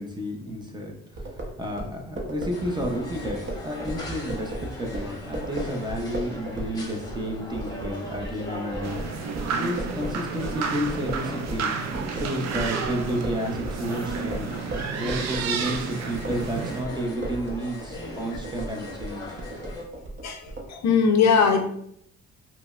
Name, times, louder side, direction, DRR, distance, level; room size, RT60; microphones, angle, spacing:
voice 1, 0.0-9.0 9.5-14.5 15.0-19.4, equal, 15° right, 1 dB, 0.6 m, -31 dB
sound 1, 1.2-11.7 11.9-20.7, right 1 dB, 40° right, 0.9 m, -36 dB
sound 2, 2.5-19.8, left 1 dB, 10° left, 0.9 m, -41 dB
sound 3, 8.8-16.8, right 5 dB, 60° right, 0.5 m, -31 dB
voice 2, 20.7-21.6, left 6 dB, 60° left, 5 dB, 0.6 m, -19 dB
5.0 x 2.0 x 2.4 m, 0.69 s
cardioid pair, 90°, 30 cm